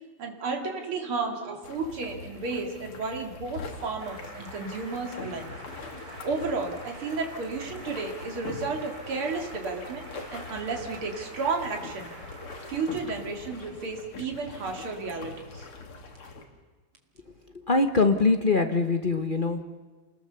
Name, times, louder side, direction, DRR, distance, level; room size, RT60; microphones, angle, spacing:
voice 1, 0.2-5.5 6.2-12.1 12.7-15.6, right 4 dB, 80° right, 3 dB, 3.3 m, -32 dB
sound 1, 1.6-16.5, left 4 dB, 90° left, 3.1 m, -43 dB
sound 2, 4.0-13.9, right 1 dB, 45° right, 4.3 m, -45 dB
voice 2, 17.5-19.6, left 3 dB, 35° left, 6 dB, 0.8 m, -23 dB
28.0 x 20.5 x 6.9 m, 1.3 s
omnidirectional pair, 2.3 m